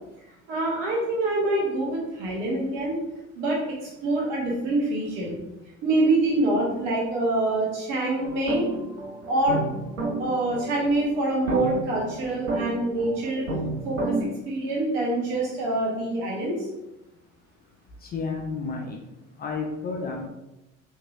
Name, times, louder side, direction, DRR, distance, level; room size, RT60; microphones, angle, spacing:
voice 1, 0.5-3.0 3.4-5.3 5.8-8.7 9.3-9.6 10.2-13.5 13.8-16.7, right 2 dB, 60° right, -2 dB, 1.2 m, -25 dB
sound 1, 8.2-14.2, right 2 dB, 90° right, 0.6 m, -31 dB
voice 2, 18.0-19.0 19.4-20.2, left 4 dB, 25° left, 1 dB, 0.4 m, -31 dB
3.2 x 2.8 x 2.4 m, 0.94 s
figure-of-eight pair, 60°, 40 cm